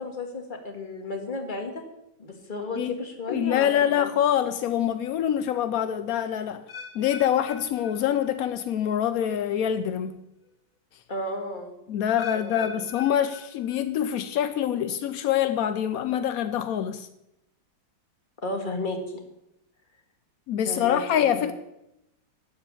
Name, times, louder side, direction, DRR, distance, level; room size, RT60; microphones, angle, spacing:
voice 1, 0.0-1.8 2.2-4.1 11.1-11.8 12.3-12.7 18.4-19.2 20.6-21.5, left 2 dB, 25° left, 1.7 m, -33 dB
voice 2, 3.3-6.6 6.9-10.2 11.9-17.1 20.5-21.5, left 10 dB, 80° left, 0.8 m, -25 dB
sound 1, 6.7-8.7 9.0-9.4 10.1-10.2 12.2-14.1 14.4-14.9 15.5-15.6, left 5 dB, 50° left, 1.2 m, -44 dB
12.5 x 5.3 x 8.5 m
omnidirectional pair, 2.2 m